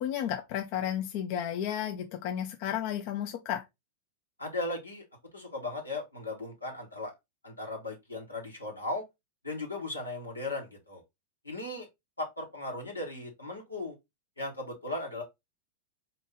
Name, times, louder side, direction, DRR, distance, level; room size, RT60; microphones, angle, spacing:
voice 1, 0.0-3.6, left 10 dB, 45° left, 0.6 m, -33 dB
voice 2, 4.4-5.0 5.3-7.1 7.4-9.0 9.4-11.0 11.4-11.9 12.2-14.0 14.4-15.2, left 2 dB, 85° left, 1.5 m, -37 dB
4.4 x 2.6 x 3.8 m
figure-of-eight pair, 90°, 0 cm